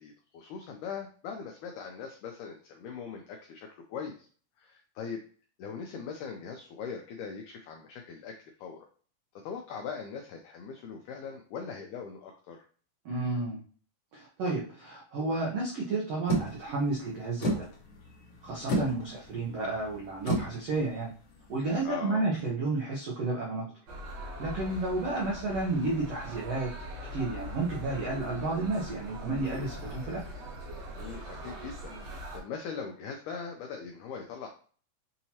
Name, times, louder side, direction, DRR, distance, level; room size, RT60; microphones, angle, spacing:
voice 1, 0.0-4.3 4.6-5.2 5.6-8.9 9.4-12.7 21.8-22.3 31.0-34.5, left 6 dB, 85° left, 3 dB, 1.7 m, -41 dB
voice 2, 13.0-13.6 14.1-17.7 18.4-21.1 21.5-23.7 24.4-26.7 27.1-30.2, right 3 dB, 85° right, -4 dB, 1.4 m, -31 dB
sound 1, 16.3-21.9, equal, 65° left, 1.5 m, -34 dB
sound 2, 23.9-32.4, left 1 dB, 65° right, 1.7 m, -41 dB
6.3 x 2.8 x 2.8 m, 0.43 s
omnidirectional pair, 4.2 m